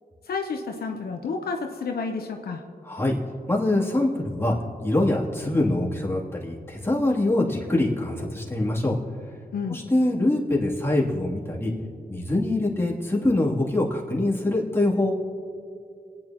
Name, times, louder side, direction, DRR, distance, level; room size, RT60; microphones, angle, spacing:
voice 1, 0.2-2.6 9.5-9.8, left 4 dB, 75° left, 3 dB, 0.8 m, -30 dB
voice 2, 2.8-3.2 3.5-4.5 4.8-9.0 9.7-11.7 12.1-15.1, left 1 dB, 15° left, -5 dB, 2.9 m, -24 dB
27.5 x 9.8 x 3.0 m, 2.4 s
cardioid pair, 60°, 16 cm